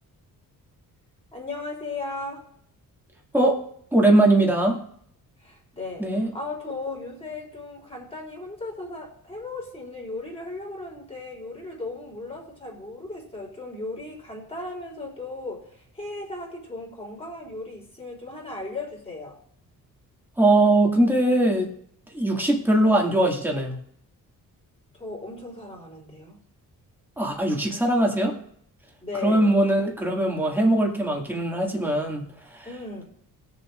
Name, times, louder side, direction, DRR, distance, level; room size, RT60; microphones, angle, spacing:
voice 1, 1.3-2.4 5.4-19.4 24.9-26.4 29.0-29.5 32.7-33.0, left 2 dB, 15° left, -1 dB, 3.6 m, -36 dB
voice 2, 3.9-4.8 6.0-6.3 20.4-21.7 22.1-23.8 27.2-28.3 29.2-32.3 32.5-32.7, right 1 dB, 5° right, -1 dB, 2.3 m, -21 dB
20.5 x 7.1 x 2.6 m, 0.65 s
cardioid pair, 140°, 34 cm